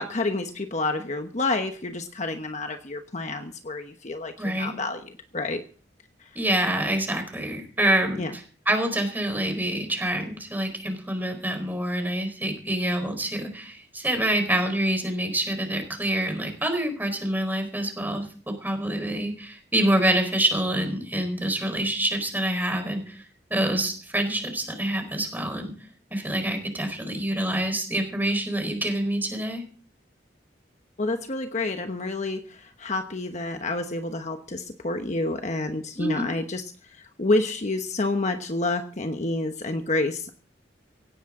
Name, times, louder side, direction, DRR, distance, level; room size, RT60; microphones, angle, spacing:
voice 1, 0.0-5.6 6.2-6.3 8.1-8.3 31.0-36.6 36.9-40.3, left 2 dB, 40° left, 6 dB, 1.2 m, -29 dB
voice 2, 4.4-4.7 6.3-8.2 8.7-23.2 23.5-25.7 26.1-29.6 36.0-36.3, right 1 dB, 10° right, 5 dB, 4.6 m, -26 dB
17.5 x 17.0 x 3.8 m, 0.42 s
head